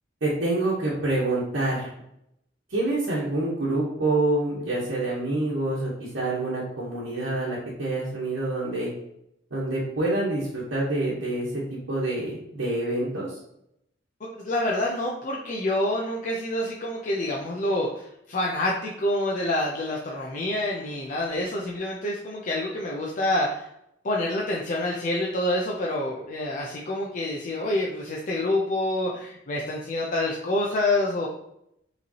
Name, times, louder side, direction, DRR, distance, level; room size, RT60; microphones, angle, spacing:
voice 1, 0.2-1.9 2.7-8.9 9.5-13.4, right 2 dB, 75° right, -8 dB, 1.1 m, -27 dB
voice 2, 14.3-23.7 24.0-31.3, left 1 dB, 45° left, -2 dB, 0.5 m, -27 dB
5.0 x 3.2 x 2.8 m, 0.78 s
head